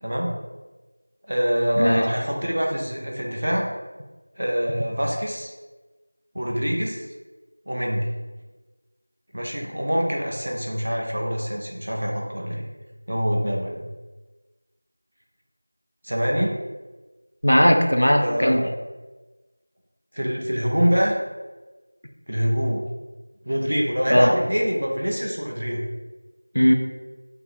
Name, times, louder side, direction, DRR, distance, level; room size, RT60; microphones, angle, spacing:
voice 1, 0.0-0.4 1.3-3.7 4.4-5.5 6.3-7.0 7.7-8.1 9.3-12.7 13.1-13.9 16.0-16.6 18.2-18.7 20.1-21.2 22.3-22.9 23.5-25.8, equal, 30° right, -1 dB, 0.5 m, -25 dB
voice 2, 17.4-18.7 24.1-24.3 26.5-26.7, equal, 55° left, 3 dB, 0.5 m, -18 dB
4.2 x 2.7 x 3.8 m, 1.2 s
figure-of-eight pair, 180°, 0 cm